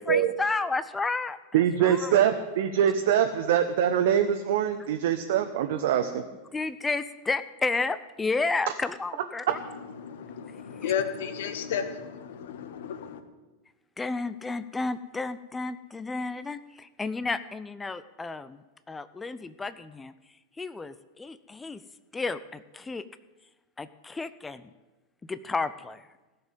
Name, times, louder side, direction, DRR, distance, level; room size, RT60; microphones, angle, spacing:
voice 1, 0.0-2.2 6.5-9.6 14.0-18.6 18.9-20.1 20.6-21.8 22.1-23.0 23.8-24.7 25.3-26.0, left 3 dB, 10° left, 14 dB, 0.6 m, -32 dB
voice 2, 1.5-6.2, right 9 dB, 55° right, 6 dB, 1.0 m, -24 dB
voice 3, 10.4-13.2, left 8 dB, 55° left, 9 dB, 1.6 m, -32 dB
17.0 x 7.2 x 9.2 m, 1.1 s
figure-of-eight pair, 90°, 0 cm